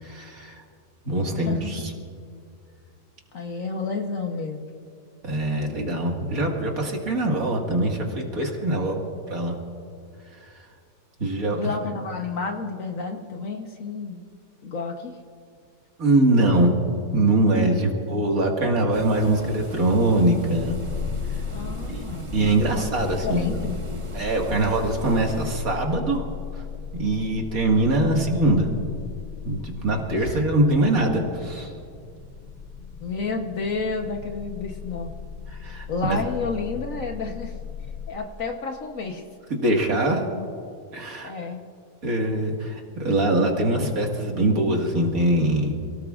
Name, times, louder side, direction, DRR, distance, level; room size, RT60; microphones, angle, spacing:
voice 1, 0.0-0.6 1.0-1.9 5.2-9.0 9.3-9.5 11.2-11.7 16.0-20.8 21.9-22.0 22.3-23.6 24.1-26.2 27.0-28.7 29.4-31.7 35.6-36.2 39.5-40.2 40.9-41.3 42.0-45.7, right 1 dB, 55° right, 1 dB, 2.3 m, -23 dB
voice 2, 1.4-1.8 3.3-4.7 11.6-14.2 14.6-15.2 21.5-22.3 22.7-22.9 23.2-23.8 30.2-30.4 33.0-35.1 35.9-37.5 38.1-39.2 41.2-41.6, left 4 dB, 55° left, 3 dB, 1.3 m, -31 dB
sound 1, 18.9-25.6, right 1 dB, 30° right, 0.6 m, -39 dB
sound 2, 20.4-38.1, left 6 dB, 40° left, 1.8 m, -36 dB
28.0 x 18.0 x 2.5 m, 2.4 s
omnidirectional pair, 1.8 m